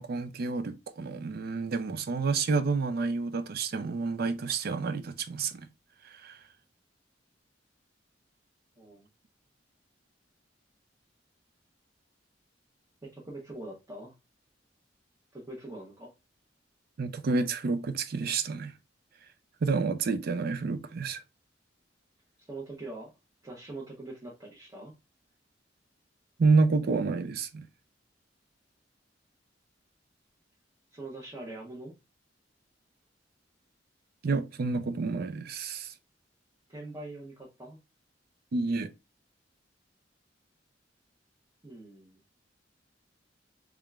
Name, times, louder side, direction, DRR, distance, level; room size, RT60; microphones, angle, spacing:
voice 1, 0.0-5.7 6.0-6.4 17.0-18.7 19.6-21.2 26.4-27.7 34.2-35.9 38.5-38.9, right 4 dB, 55° right, 0.4 m, -29 dB
voice 2, 8.8-9.1 13.0-14.1 15.3-16.1 22.4-23.1 23.4-24.9 30.9-31.9 36.7-37.8 41.6-42.2, right 2 dB, 20° right, 0.9 m, -43 dB
3.6 x 3.3 x 2.3 m
head